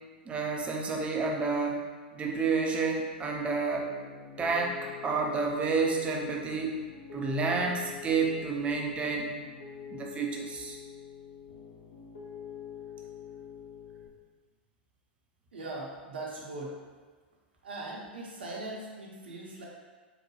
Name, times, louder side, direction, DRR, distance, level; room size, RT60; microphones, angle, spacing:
voice 1, 0.3-3.9 4.4-6.8 7.1-9.4 9.9-10.8, right 4 dB, 20° right, 1 dB, 0.5 m, -30 dB
Piano, 3.7-14.1, left 8 dB, 70° left, 0.6 m, -45 dB
voice 2, 15.5-16.8 17.6-19.7, right 2 dB, 75° right, -3 dB, 0.8 m, -40 dB
3.9 x 2.2 x 3.1 m, 1.4 s
figure-of-eight pair, 100°, 6 cm